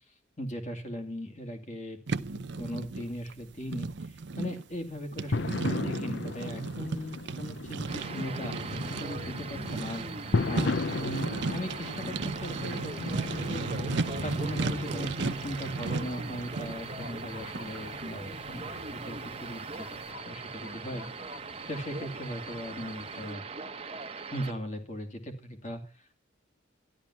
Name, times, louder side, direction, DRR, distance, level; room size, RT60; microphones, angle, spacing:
voice 1, 0.4-2.0 2.3-13.6 14.2-21.1 21.7-23.5 24.3-26.1, equal, 35° left, 5 dB, 2.5 m, -39 dB
sound 1, 2.1-19.7, right 3 dB, 60° right, 0.6 m, -36 dB
sound 2, 5.3-23.3, left 3 dB, 60° left, 0.6 m, -37 dB
sound 3, 7.9-24.5, right 4 dB, 30° right, 0.8 m, -41 dB
12.5 x 11.5 x 6.1 m, 0.39 s
head